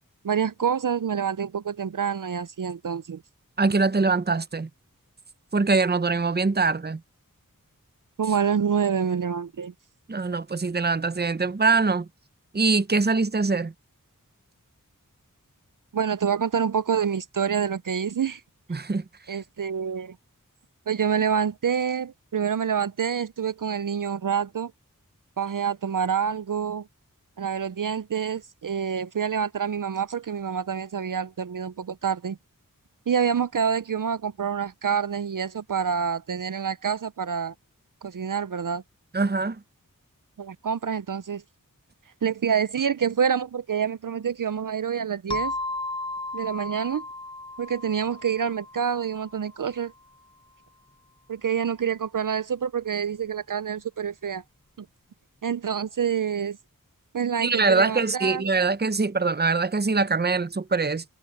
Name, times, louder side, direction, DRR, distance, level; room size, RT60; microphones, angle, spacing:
voice 1, 0.2-3.2 8.2-9.7 15.9-18.4 19.3-20.2 20.9-24.7 25.4-26.9 27.4-32.4 33.1-37.5 38.0-38.8 40.4-41.4 42.2-45.5 46.3-47.0 47.6-49.9 51.3-54.4 54.8-54.9 55.4-56.6 57.1-58.6, right 7 dB, 65° right, 0.5 m, -27 dB
voice 2, 3.6-4.7 5.5-7.0 10.1-12.1 12.5-13.7 18.7-19.0 39.1-39.6 57.4-61.0, right 4 dB, 30° right, 0.7 m, -23 dB
sound 1, 45.3-49.7, left 2 dB, 15° left, 0.5 m, -35 dB
wide cardioid pair, 40°, 34 cm